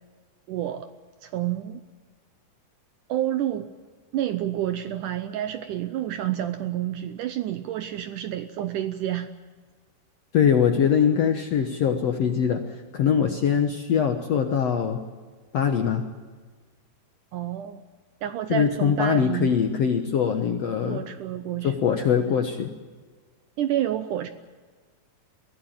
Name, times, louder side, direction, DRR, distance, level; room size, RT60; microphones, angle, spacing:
voice 1, 0.5-0.9 1.2-1.8 3.1-3.7 4.1-9.3 17.3-17.8 18.2-19.5 20.9-22.0 23.6-24.3, right 11 dB, 75° right, 10 dB, 2.0 m, -29 dB
voice 2, 10.3-15.0 15.5-16.0 18.5-21.0 21.6-22.7, left 7 dB, 65° left, 6 dB, 1.7 m, -22 dB
23.0 x 15.5 x 8.8 m, 1.5 s
omnidirectional pair, 4.4 m